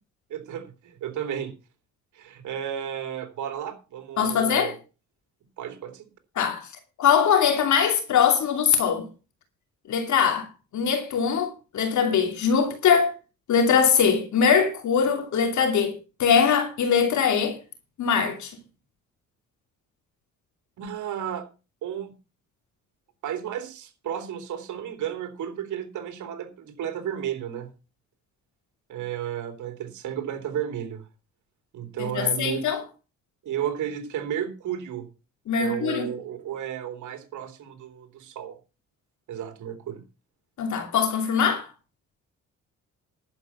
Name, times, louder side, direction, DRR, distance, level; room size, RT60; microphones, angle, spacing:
voice 1, 0.3-1.5 2.1-4.8 5.6-6.1 20.8-21.4 21.8-22.1 23.2-27.7 28.9-31.0 31.7-32.6 33.4-35.1 35.6-38.6 39.3-40.0, right 9 dB, 75° right, 3.0 m, -33 dB
voice 2, 4.2-4.7 6.4-6.7 7.0-9.1 9.9-10.5 10.7-13.1 13.5-17.6 18.0-18.5 32.0-32.8 35.5-36.1 40.6-41.7, left 7 dB, 70° left, 2.8 m, -22 dB
11.0 x 8.4 x 5.6 m
cardioid pair, 90°, 30 cm